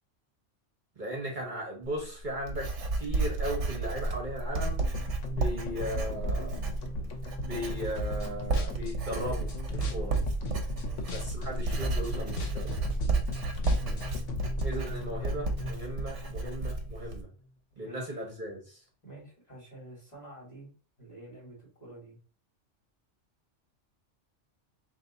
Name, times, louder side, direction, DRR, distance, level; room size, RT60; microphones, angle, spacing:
voice 1, 1.0-4.8 5.3-6.8 7.4-10.2 11.1-12.8 14.6-17.3 17.8-18.8, equal, 40° right, 1.2 m, -37 dB
Writing, 1.8-17.2, right 2 dB, 70° right, 1.1 m, -33 dB
sound 1, 4.6-17.0, left 1 dB, 90° left, 1.2 m, -39 dB
sound 2, 7.9-8.3 8.5-11.5 11.7-14.6, left 1 dB, 55° left, 0.9 m, -35 dB
voice 2, 10.7-11.2 13.8-14.0 16.2-16.3 17.8-18.0 19.0-20.7 21.0-22.2, right 1 dB, 35° left, 2.3 m, -48 dB
3.5 x 2.8 x 3.9 m
omnidirectional pair, 1.3 m